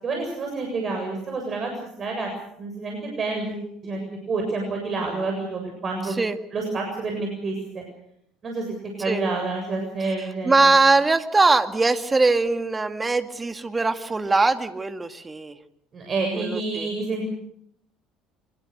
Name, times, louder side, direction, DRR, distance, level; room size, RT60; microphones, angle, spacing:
voice 1, 0.0-1.7 2.0-2.3 2.6-4.0 4.3-6.2 6.5-7.8 8.4-8.7 9.0-10.7 15.9-17.3, right 3 dB, 40° right, 2 dB, 7.4 m, -28 dB
voice 2, 6.1-6.4 9.0-9.2 10.0-15.6 16.4-16.9, right 3 dB, 20° right, 8 dB, 2.1 m, -21 dB
25.5 x 22.5 x 6.7 m, 0.73 s
hypercardioid pair, 60°, 0 cm